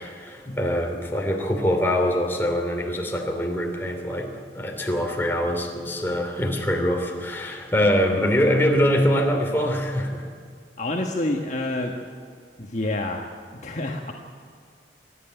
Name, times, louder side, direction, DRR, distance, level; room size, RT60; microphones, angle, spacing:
voice 1, 0.0-10.3, equal, 15° left, 1 dB, 3.0 m, -24 dB
voice 2, 10.8-11.9 12.6-13.2 13.6-14.1, left 2 dB, 40° left, 1 dB, 1.5 m, -27 dB
27.5 x 11.5 x 9.0 m, 2.1 s
head